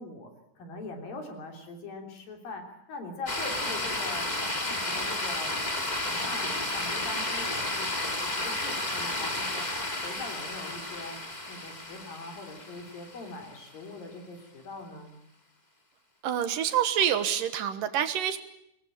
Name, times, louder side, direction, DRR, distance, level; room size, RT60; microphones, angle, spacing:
voice 1, 0.0-5.6 6.0-9.7 10.0-15.2, left 3 dB, 70° left, 4 dB, 5.2 m, -42 dB
sound 1, 3.3-13.5, left 2 dB, 15° left, 2.0 m, -32 dB
voice 2, 16.2-18.4, right 9 dB, 70° right, 11 dB, 2.8 m, -27 dB
23.0 x 20.5 x 8.8 m, 0.79 s
omnidirectional pair, 4.2 m